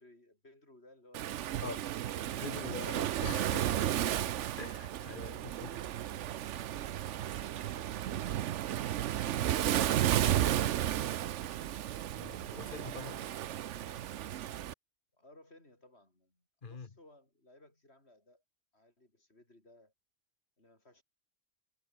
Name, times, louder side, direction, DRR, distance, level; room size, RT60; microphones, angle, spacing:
voice 1, 0.0-2.0 4.6-6.1 6.6-8.6 12.8-14.3 15.1-18.4 18.7-19.9 20.6-21.0, left 1 dB, 65° left, 6.9 m, -62 dB
Waves surf, 1.1-14.7, right 11 dB, 90° right, 1.0 m, -33 dB
voice 2, 2.1-3.8 4.6-5.8 12.2-13.2 16.6-16.9, left 5 dB, 45° left, 1.5 m, -44 dB
omnidirectional pair, 1.2 m